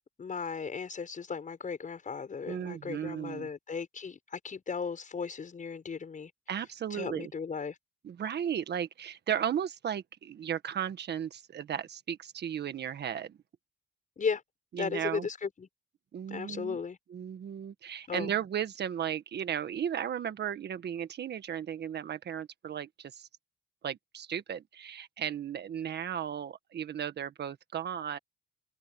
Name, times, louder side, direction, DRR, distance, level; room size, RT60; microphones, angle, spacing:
voice 1, 0.2-6.3 6.9-7.8 14.2-14.4 14.8-15.7 16.3-17.0 18.1-18.3, left 5 dB, 40° left, 6.3 m, -36 dB
voice 2, 2.5-3.5 6.5-7.3 8.0-13.4 14.7-15.3 16.1-16.8 17.1-23.3 23.8-28.2, right 9 dB, 60° right, 1.6 m, -35 dB
cardioid pair, 90°, 20 cm